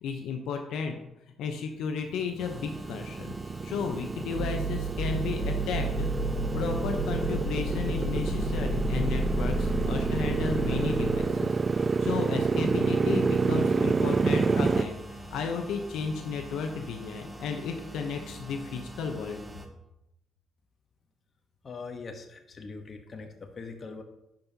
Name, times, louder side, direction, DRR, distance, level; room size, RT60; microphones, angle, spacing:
voice 1, 0.0-0.9 1.4-6.1 6.5-19.4, left 5 dB, 85° left, 4 dB, 0.8 m, -33 dB
Motorcycle, 2.2-14.9, right 4 dB, 35° right, 0.3 m, -28 dB
sound 1, 2.4-19.7, right 2 dB, 10° right, 1.1 m, -44 dB
sound 2, 4.3-11.2, right 1 dB, 60° right, 1.6 m, -31 dB
voice 2, 21.6-24.0, left 4 dB, 45° left, 5 dB, 1.0 m, -42 dB
10.5 x 5.3 x 2.8 m, 0.86 s
cardioid pair, 90°, 0 cm